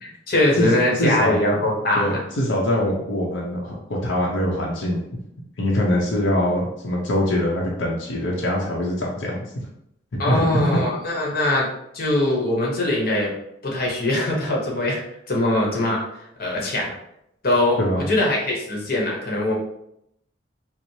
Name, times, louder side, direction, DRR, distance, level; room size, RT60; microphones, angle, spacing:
voice 1, 0.0-2.2 10.2-11.7 11.9-13.3 13.6-15.0 15.3-16.0 16.4-16.9 17.4-19.6, left 1 dB, 55° left, -2 dB, 0.9 m, -22 dB
voice 2, 1.0-1.4 2.0-5.0 5.6-9.6 10.1-10.8 17.8-18.1, left 1 dB, 85° left, -3 dB, 0.7 m, -23 dB
4.5 x 2.0 x 2.7 m, 0.77 s
head